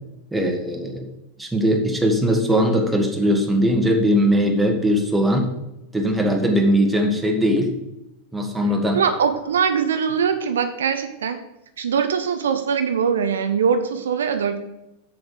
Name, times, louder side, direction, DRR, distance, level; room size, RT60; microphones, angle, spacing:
voice 1, 0.3-1.1 1.4-5.5 5.9-7.7 8.3-9.0, equal, 5° right, 2 dB, 1.6 m, -20 dB
voice 2, 8.9-11.4 11.8-14.6, right 6 dB, 65° right, 8 dB, 0.7 m, -22 dB
7.7 x 7.1 x 4.9 m, 0.92 s
figure-of-eight pair, 90°, 0 cm